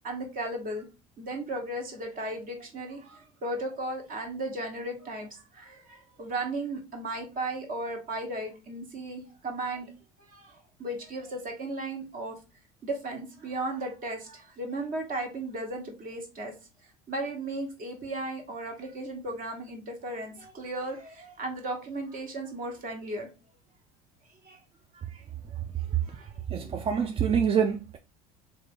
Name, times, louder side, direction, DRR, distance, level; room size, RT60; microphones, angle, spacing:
voice 1, 0.0-0.9 1.2-9.9 10.3-12.4 12.8-16.5 17.1-23.3 24.4-24.6 24.9-25.2 26.1-26.3 27.2-27.4, right 2 dB, 45° right, 1.3 m, -35 dB
voice 2, 26.5-28.0, right 7 dB, 30° right, 0.4 m, -26 dB
3.2 x 2.5 x 3.6 m
hypercardioid pair, 75°, 19 cm